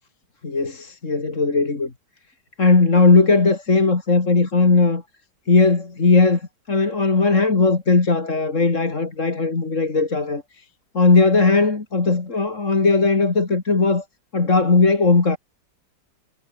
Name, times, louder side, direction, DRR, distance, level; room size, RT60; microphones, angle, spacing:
voice 1, 0.4-1.9 2.6-5.0 5.5-10.6 10.9-14.0 14.3-15.4, left 3 dB, 40° left, 3.0 m, -18 dB
omnidirectional pair, 2.0 m